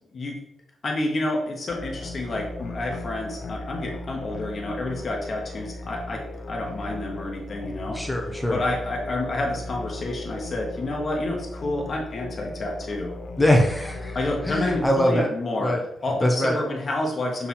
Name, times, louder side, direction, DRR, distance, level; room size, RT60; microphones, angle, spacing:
voice 1, 0.8-6.2 6.5-8.0 8.5-13.1 14.1-15.7 16.0-17.5, left 2 dB, 40° left, 0 dB, 1.1 m, -29 dB
sound 1, 1.7-14.8, left 2 dB, 60° left, 0.7 m, -37 dB
voice 2, 7.9-8.6 13.4-14.2 14.5-15.3 15.6-15.8 16.2-16.6, left 1 dB, 10° left, 2 dB, 0.8 m, -22 dB
7.0 x 3.5 x 4.3 m, 0.80 s
wide cardioid pair, 155°, 0 cm